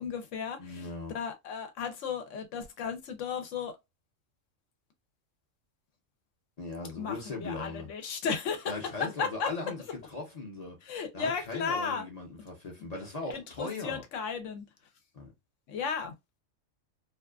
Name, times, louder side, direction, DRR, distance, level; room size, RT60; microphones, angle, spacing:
voice 1, 0.0-3.8 7.0-8.7 9.0-9.5 10.8-12.1 13.2-14.7 15.7-16.1, left 6 dB, 75° left, 1.0 m, -34 dB
voice 2, 0.6-1.1 6.6-7.9 8.7-14.0 15.1-15.3, left 3 dB, 40° left, 0.6 m, -39 dB
2.5 x 2.3 x 2.3 m
omnidirectional pair, 1.3 m